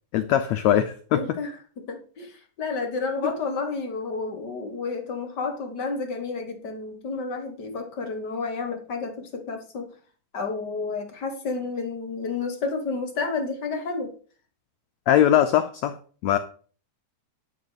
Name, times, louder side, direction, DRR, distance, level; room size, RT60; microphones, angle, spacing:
voice 1, 0.1-1.2 3.2-3.3 15.1-16.0 16.2-16.4, left 11 dB, 75° left, 9 dB, 1.6 m, -21 dB
voice 2, 1.1-1.5 1.8-2.3 2.6-9.9 10.3-14.1, left 4 dB, 50° left, 5 dB, 1.3 m, -30 dB
11.5 x 4.8 x 8.2 m, 0.42 s
omnidirectional pair, 3.9 m